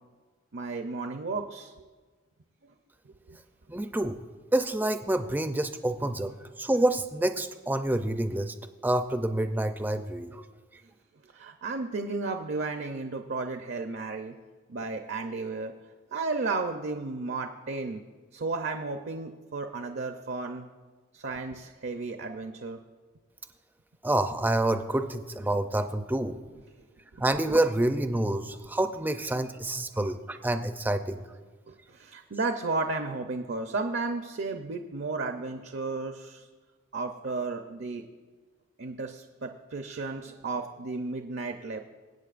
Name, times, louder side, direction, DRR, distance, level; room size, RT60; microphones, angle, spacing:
voice 1, 0.5-1.9 3.1-3.4 11.3-14.3 14.7-15.7 16.1-18.0 18.3-20.7 21.1-22.8 27.1-27.2 31.7-36.5 36.9-38.1 38.8-41.8, right 3 dB, 60° right, 5 dB, 0.6 m, -33 dB
voice 2, 3.7-4.2 4.5-8.5 8.8-10.4 24.0-26.4 27.2-31.2, right 1 dB, 10° right, 8 dB, 0.4 m, -27 dB
23.5 x 8.5 x 2.5 m, 1.4 s
head